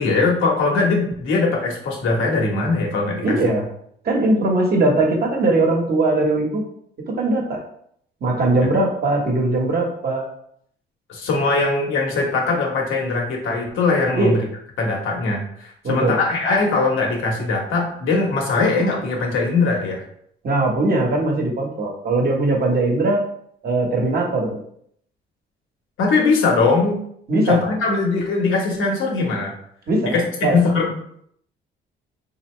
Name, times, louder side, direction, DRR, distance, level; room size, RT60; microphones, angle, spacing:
voice 1, 0.0-3.4 11.1-14.4 14.8-20.0 26.0-27.0 27.4-29.5 30.0-30.9, left 3 dB, 85° left, -1 dB, 1.1 m, -20 dB
voice 2, 3.2-3.7 4.0-6.6 7.1-7.6 8.2-10.3 14.1-14.4 15.8-16.2 20.4-23.2 23.6-24.6 27.3-27.6 29.9-30.2 30.4-30.6, right 2 dB, 50° right, 1 dB, 1.1 m, -20 dB
4.1 x 2.7 x 3.1 m, 0.68 s
cardioid pair, 90°, 20 cm